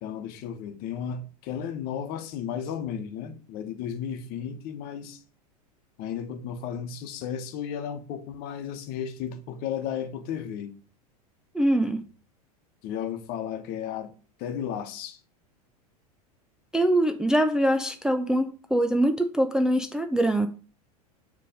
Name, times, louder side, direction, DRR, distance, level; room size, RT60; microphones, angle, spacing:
voice 1, 0.0-5.2 6.0-10.7 12.8-14.1 14.4-15.2, left 8 dB, 50° left, 1.1 m, -34 dB
voice 2, 11.5-12.0 16.7-20.5, right 1 dB, 5° right, 0.4 m, -23 dB
6.6 x 3.2 x 5.0 m
hypercardioid pair, 95°, 20 cm